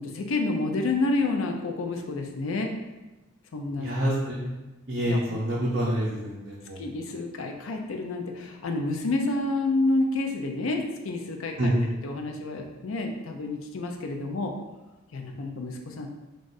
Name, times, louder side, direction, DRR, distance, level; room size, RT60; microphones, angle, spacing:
voice 1, 0.0-2.7 3.5-3.9 5.0-5.4 6.8-11.7 12.0-14.5 15.1-16.1, left 2 dB, 70° left, 3 dB, 0.4 m, -29 dB
voice 2, 3.8-4.6 4.9-6.8 11.6-11.9, equal, 50° right, -6 dB, 0.5 m, -27 dB
2.5 x 2.3 x 3.9 m, 1.1 s
head